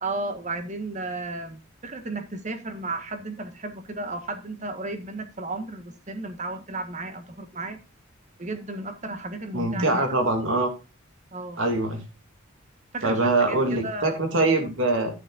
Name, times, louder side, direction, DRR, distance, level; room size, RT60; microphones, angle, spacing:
voice 1, 0.0-7.8 8.4-10.2 11.3-11.6 12.9-14.1 14.6-14.7, right 2 dB, 35° right, 8 dB, 1.5 m, -34 dB
voice 2, 9.5-10.7 11.6-12.0 13.0-15.1, right 2 dB, 65° right, 5 dB, 2.7 m, -23 dB
11.5 x 9.7 x 2.6 m, 0.29 s
head